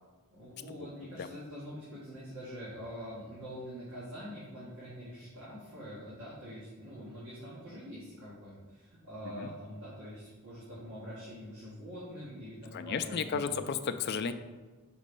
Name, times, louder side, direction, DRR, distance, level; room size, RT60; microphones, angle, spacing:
voice 1, 0.3-13.5, equal, 90° right, -9 dB, 1.8 m, -45 dB
voice 2, 12.7-14.3, left 6 dB, 50° left, 9 dB, 0.4 m, -33 dB
5.4 x 4.1 x 5.3 m, 1.3 s
head